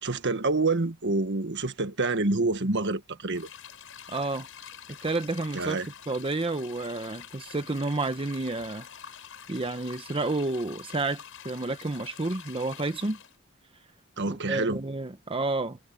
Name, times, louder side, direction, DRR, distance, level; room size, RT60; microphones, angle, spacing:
voice 1, 0.0-3.5 5.5-5.9 14.2-14.8, right 3 dB, 60° right, 1.5 m, -27 dB
sound 1, 3.3-13.4, left 8 dB, 65° left, 7.7 m, -46 dB
voice 2, 4.1-4.5 5.0-5.8 6.1-8.9 9.5-13.2 14.3-15.8, right 2 dB, 25° right, 0.8 m, -30 dB
head